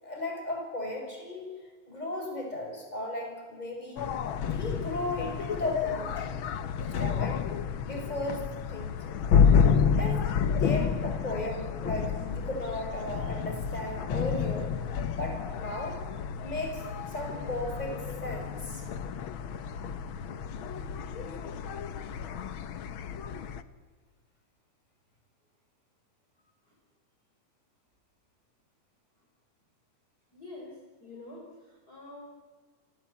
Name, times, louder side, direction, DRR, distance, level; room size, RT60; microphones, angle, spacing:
voice 1, 0.0-1.5 1.9-4.0 4.4-6.4 6.9-7.4 7.8-9.0 10.0-14.7 15.2-16.0 16.4-18.0 18.2-18.8, left 1 dB, 10° left, 2 dB, 6.3 m, -36 dB
sound 1, 4.0-23.6, left 7 dB, 65° left, 1.2 m, -30 dB
voice 2, 30.3-32.2, left 2 dB, 30° left, -2 dB, 5.1 m, -47 dB
29.5 x 18.0 x 8.5 m, 1.5 s
omnidirectional pair, 3.6 m